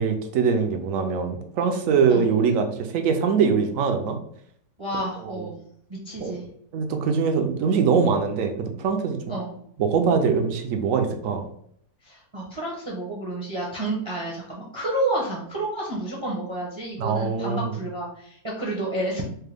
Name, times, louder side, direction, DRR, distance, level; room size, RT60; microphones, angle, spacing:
voice 1, 0.0-2.7 2.9-4.2 5.3-5.4 6.2-6.4 6.7-9.3 9.8-11.4 17.0-17.7, right 6 dB, 70° right, 5 dB, 0.9 m, -23 dB
voice 2, 4.8-5.6 5.9-6.5 9.3-9.5 12.0-19.2, right 1 dB, 25° right, -3 dB, 0.6 m, -30 dB
4.5 x 2.2 x 3.3 m, 0.67 s
omnidirectional pair, 1.6 m